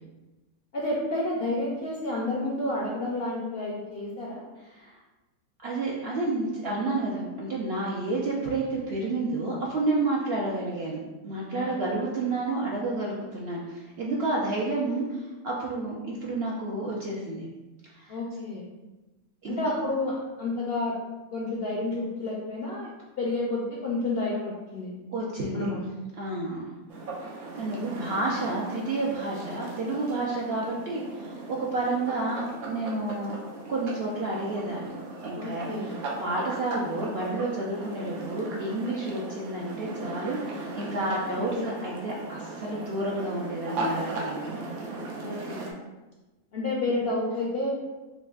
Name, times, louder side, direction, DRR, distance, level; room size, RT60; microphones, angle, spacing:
voice 1, 0.7-4.4 11.5-11.7 18.1-18.7 19.5-20.1 20.4-21.0 21.3-22.9 23.2-24.9 25.5-25.8 35.3-35.9 41.5-41.7 45.2-45.8 46.5-47.7, left 2 dB, 65° left, -4 dB, 0.6 m, -30 dB
voice 2, 5.6-17.5 17.8-18.2 19.4-19.7 25.1-25.7 26.2-26.6 26.9-33.4 33.7-34.9 35.2-44.5, right 2 dB, 65° right, -4 dB, 0.6 m, -30 dB
sound 1, 26.9-45.7, right 2 dB, 80° right, 1.2 m, -37 dB
5.8 x 2.1 x 2.3 m, 1.1 s
omnidirectional pair, 1.5 m